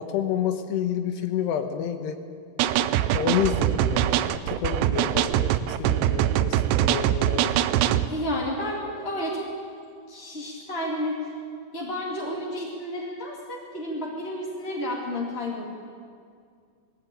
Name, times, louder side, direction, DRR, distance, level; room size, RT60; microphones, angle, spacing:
voice 1, 0.0-2.2 3.1-7.6, left 9 dB, 80° left, 7 dB, 3.2 m, -29 dB
sound 1, 2.6-8.1, right 12 dB, 85° right, 2.8 m, -23 dB
voice 2, 8.1-9.5 10.1-11.2 11.7-15.6, left 1 dB, 20° left, -4 dB, 1.9 m, -31 dB
20.5 x 15.5 x 8.5 m, 2.2 s
omnidirectional pair, 4.9 m